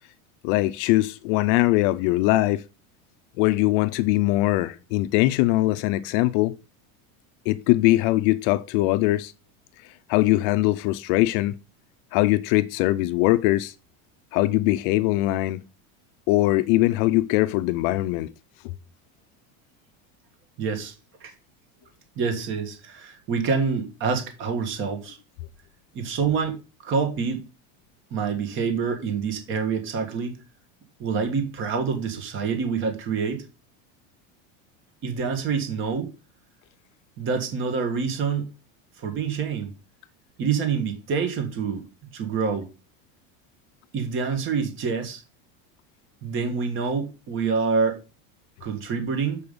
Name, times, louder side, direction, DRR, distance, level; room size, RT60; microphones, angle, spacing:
voice 1, 0.4-2.6 3.4-6.5 7.5-9.3 10.1-11.6 12.1-13.7 14.3-15.6 16.3-18.3, left 17 dB, 45° left, 0.5 m, -21 dB
voice 2, 20.6-20.9 21.2-21.3 22.2-25.2 25.9-27.4 28.1-30.3 31.0-33.4 35.0-36.1 37.2-38.5 39.0-39.7 40.4-41.8 42.1-42.7 43.9-45.2 46.2-48.0 48.6-49.4, right 5 dB, 30° right, 1.5 m, -26 dB
6.9 x 5.4 x 6.6 m
cardioid pair, 175°, 40 cm